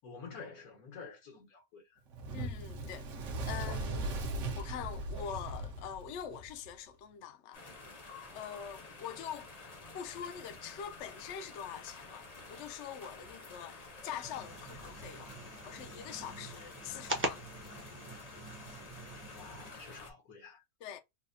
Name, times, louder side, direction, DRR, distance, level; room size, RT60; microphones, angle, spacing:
voice 1, 0.0-2.0 19.3-20.6, left 4 dB, 85° left, 1.9 m, -49 dB
Fire, 2.1-6.7, right 2 dB, 65° right, 1.1 m, -38 dB
voice 2, 2.3-3.1 3.5-4.1 4.5-7.6 8.3-9.5 9.9-15.4 15.6-17.5 20.8-21.0, left 8 dB, 65° left, 0.8 m, -44 dB
sound 1, 7.5-20.1, left 3 dB, 35° left, 0.8 m, -50 dB
sound 2, 14.2-19.7, right 1 dB, 15° right, 0.5 m, -42 dB
4.0 x 2.2 x 2.6 m
omnidirectional pair, 1.5 m